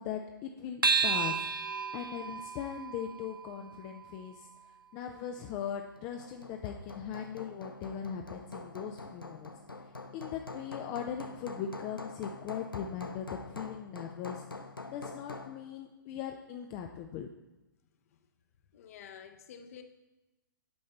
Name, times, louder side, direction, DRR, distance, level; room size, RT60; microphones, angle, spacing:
voice 1, 0.0-1.4 1.9-4.5 4.9-9.5 10.1-14.4 14.9-17.3, left 8 dB, 25° left, 0.4 m, -39 dB
sound 1, 0.8-5.6, right 4 dB, 85° right, 0.6 m, -34 dB
Hammer, 6.0-15.6, left 3 dB, 85° left, 0.6 m, -45 dB
voice 2, 18.7-19.8, left 8 dB, 45° left, 0.8 m, -49 dB
8.6 x 6.5 x 4.3 m
figure-of-eight pair, 120°, 11 cm